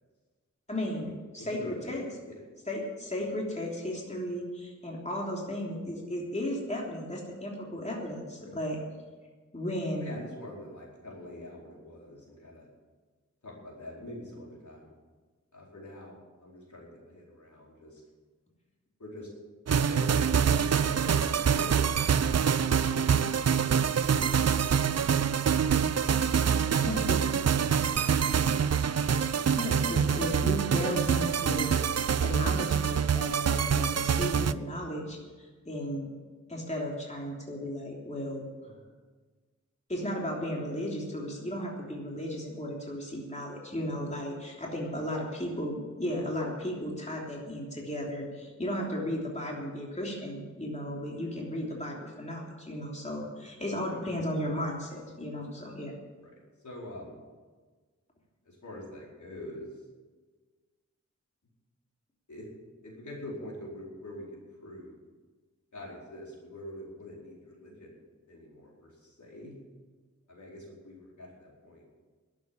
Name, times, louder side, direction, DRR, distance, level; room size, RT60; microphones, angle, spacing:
voice 1, 0.7-2.0 2.7-8.8 9.5-10.1 26.8-27.2 29.6-31.8 32.2-36.1 36.5-38.5 39.9-55.9, equal, 25° left, -2 dB, 3.2 m, -35 dB
voice 2, 1.4-2.0 2.3-2.4 8.4-8.5 10.0-12.7 13.4-14.9 15.5-18.0 19.0-19.3 19.8-21.9 22.8-23.9 26.8-27.4 38.6-38.8 45.2-45.3 51.7-51.8 53.8-54.7 56.2-56.3 56.6-57.2 58.4-59.6 62.3-62.5 62.8-64.3 64.6-65.0 65.7-67.9 68.3-69.6 70.3-71.9, left 1 dB, 75° left, -3 dB, 4.6 m, -45 dB
sound 1, 19.7-34.5, right 7 dB, 55° right, 0.5 m, -26 dB
12.0 x 8.4 x 9.8 m, 1.4 s
wide cardioid pair, 65°, 30 cm